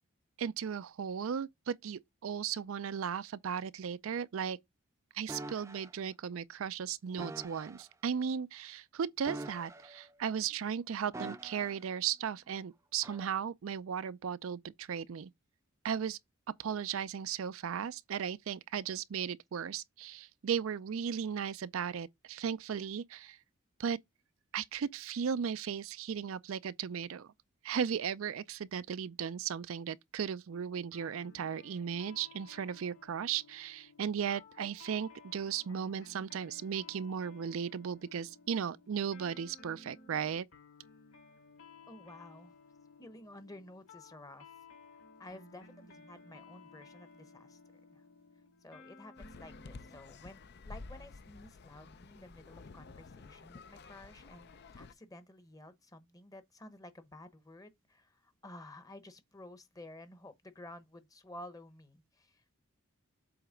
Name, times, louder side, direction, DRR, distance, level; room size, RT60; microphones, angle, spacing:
voice 1, 0.4-4.6 5.1-15.3 15.8-16.2 16.6-23.4 23.8-24.0 24.5-27.3 27.6-40.5, right 7 dB, 70° right, 0.4 m, -36 dB
sound 1, 5.3-5.9 7.2-7.8 9.2-10.1 11.1-11.9 13.0-13.3, right 2 dB, 15° right, 0.6 m, -44 dB
sound 2, 30.9-50.0, left 4 dB, 70° left, 4.0 m, -57 dB
voice 2, 41.9-42.5 43.0-44.5 44.9-47.6 47.9-48.0 48.6-62.5, left 1 dB, 15° left, 0.9 m, -52 dB
sound 3, 49.2-54.9, left 3 dB, 50° left, 0.5 m, -51 dB
7.8 x 3.3 x 5.0 m
head